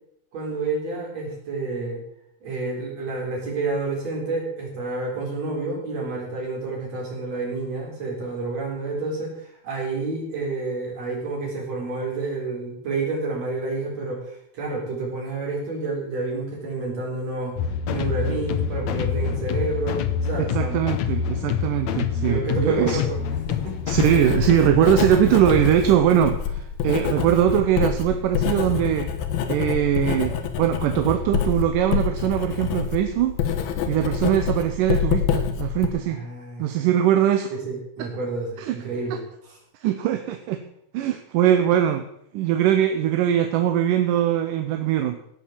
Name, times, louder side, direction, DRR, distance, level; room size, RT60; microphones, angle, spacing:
voice 1, 0.3-2.0 2.4-17.5 17.9-20.8 22.2-23.2 23.5-23.8 36.1-36.9 37.5-39.2, right 3 dB, 45° right, -1 dB, 5.2 m, -29 dB
sound 1, 17.6-25.6, left 7 dB, 75° left, 1.7 m, -27 dB
voice 2, 20.5-23.0 23.9-29.1 29.5-33.4 33.9-36.2 36.6-37.5 38.6-38.7 39.1-39.2 39.8-40.6 40.9-42.1 42.3-45.2, right 11 dB, 75° right, 7 dB, 2.3 m, -21 dB
Writing, 23.1-35.9, left 8 dB, 90° left, 3.2 m, -27 dB
16.5 x 7.1 x 7.3 m, 0.73 s
omnidirectional pair, 4.2 m